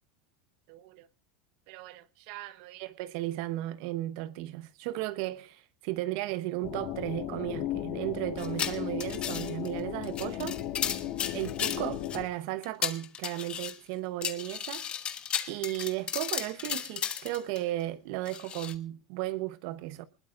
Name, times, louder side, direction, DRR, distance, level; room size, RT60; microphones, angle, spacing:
voice 1, 0.7-1.1 1.7-10.6 11.3-14.8 15.5-20.0, right 16 dB, 60° right, 0.9 m, -35 dB
sound 1, 6.6-12.3, left 13 dB, 60° left, 2.0 m, -36 dB
sound 2, 8.4-9.7 10.0-12.2 12.6-13.8 14.2-17.6 18.3-18.7, left 8 dB, 30° left, 1.3 m, -34 dB
20.5 x 20.5 x 2.5 m
supercardioid pair, 130°, 3 cm